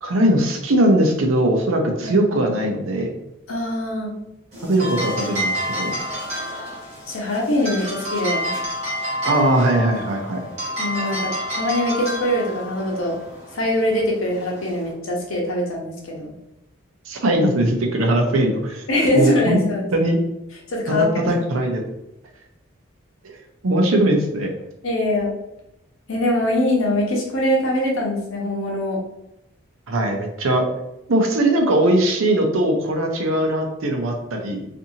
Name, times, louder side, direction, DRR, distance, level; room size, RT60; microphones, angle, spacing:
voice 1, 0.0-3.1 4.6-6.0 9.2-10.5 17.1-18.8 19.2-19.6 19.9-20.2 20.9-21.8 23.2-23.4 23.6-24.5 29.9-30.7 31.1-34.7, right 1 dB, 85° right, 3 dB, 0.6 m, -20 dB
voice 2, 3.5-4.1 7.1-8.5 10.8-13.1 13.5-16.3 18.9-19.9 20.7-21.3 24.8-25.3 26.1-29.0, left 1 dB, 90° left, -2 dB, 0.8 m, -22 dB
sound 1, 4.5-14.9, equal, 35° right, 1.0 m, -29 dB
2.6 x 2.6 x 2.7 m, 0.86 s
head